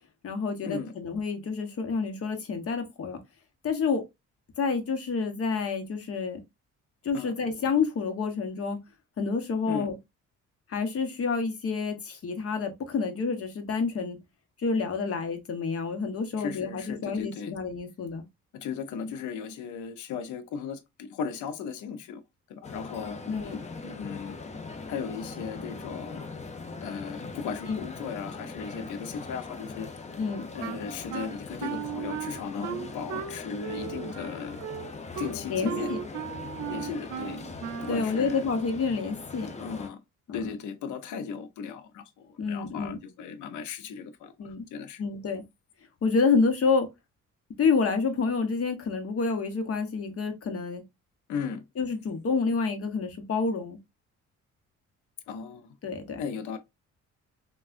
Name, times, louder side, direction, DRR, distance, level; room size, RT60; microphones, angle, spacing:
voice 1, 0.2-3.2 3.6-4.0 4.6-6.4 7.0-8.8 9.2-9.9 10.7-14.2 14.6-18.2 23.3-23.6 27.7-27.9 30.2-30.5 35.5-36.0 37.9-39.5 40.3-40.4 42.4-43.0 44.4-44.6 45.0-45.4 46.0-46.9 47.6-50.8 51.8-53.8 55.8-56.2, left 4 dB, 50° left, 0.9 m, -28 dB
voice 2, 16.4-17.5 18.5-22.2 22.5-23.2 23.8-24.4 24.8-26.3 26.8-29.9 30.5-34.6 35.2-36.0 36.7-37.5 37.8-38.4 39.6-40.0 40.3-45.0 51.3-51.6 55.3-55.7 56.2-56.6, left 6 dB, 75° left, 0.6 m, -36 dB
sound 1, 22.6-39.9, left 4 dB, 25° left, 0.6 m, -41 dB
Wind instrument woodwind instrument, 30.6-38.1, right 9 dB, 75° right, 0.6 m, -36 dB
3.4 x 2.3 x 2.4 m
cardioid pair, 90°, 30 cm